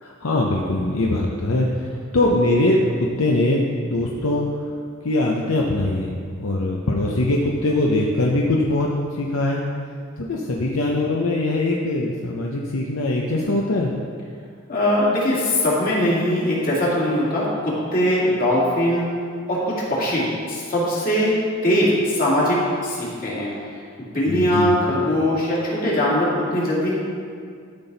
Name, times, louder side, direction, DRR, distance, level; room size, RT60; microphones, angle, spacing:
voice 1, 0.0-1.9 2.1-2.8 3.2-4.5 5.0-8.9 9.1-9.6 10.2-13.9 24.3-24.7, left 2 dB, 70° left, -1 dB, 0.7 m, -22 dB
voice 2, 14.7-19.1 19.5-21.3 21.6-22.6 22.8-23.5 24.0-26.9, left 1 dB, 45° left, -6 dB, 2.5 m, -21 dB
12.5 x 6.0 x 4.0 m, 2.2 s
head